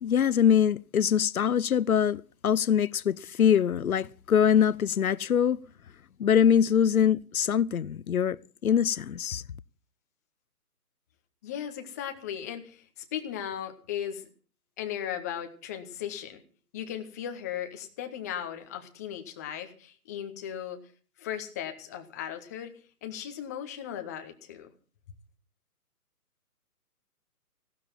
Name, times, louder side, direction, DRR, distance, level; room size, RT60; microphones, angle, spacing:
voice 1, 0.0-5.6 6.2-9.4, left 8 dB, 65° left, 0.8 m, -23 dB
voice 2, 11.4-14.3 14.8-16.4 16.7-20.8 21.2-22.7 23.0-24.7, left 9 dB, 10° left, 0.8 m, -37 dB
16.5 x 12.5 x 5.8 m
figure-of-eight pair, 150°, 47 cm